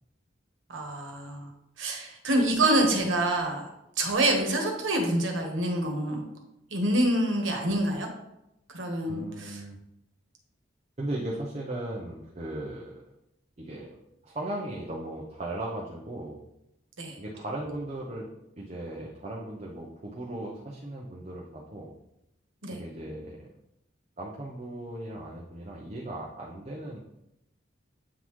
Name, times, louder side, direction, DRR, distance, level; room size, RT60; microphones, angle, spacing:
voice 1, 0.7-1.5 1.8-3.7 4.0-6.2 6.7-8.1 8.7-9.6 17.0-17.2 22.6-22.8, right 1 dB, 85° right, 2 dB, 1.2 m, -26 dB
voice 2, 9.1-9.8 11.0-13.0 13.6-13.9 14.2-16.4 17.2-18.3 18.5-21.9 22.7-23.5 24.2-27.0, right 1 dB, 35° right, -3 dB, 0.7 m, -37 dB
8.3 x 3.8 x 3.1 m, 0.85 s
head